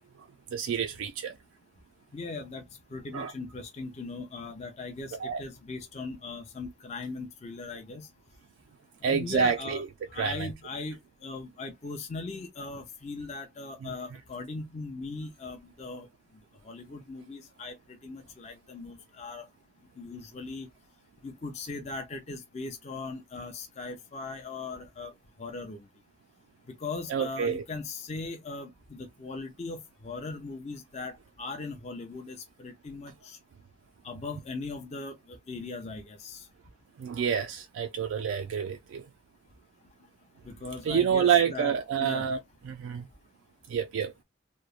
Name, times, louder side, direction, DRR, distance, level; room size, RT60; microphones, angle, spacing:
voice 1, 0.2-1.4 3.1-3.3 5.1-5.4 9.0-9.9 10.1-10.5 13.8-14.2 27.1-27.6 37.0-39.1 40.8-42.4 42.6-43.1 43.7-44.1, right 7 dB, 80° right, 0.3 m, -28 dB
voice 2, 2.1-2.6 2.9-8.1 9.0-9.8 10.1-16.1 16.6-17.7 18.0-19.5 20.0-20.7 21.2-25.1 25.4-25.9 26.8-33.4 34.0-36.5 40.4-41.7 42.0-42.3, left 3 dB, 35° left, 0.5 m, -39 dB
2.9 x 2.0 x 2.3 m
head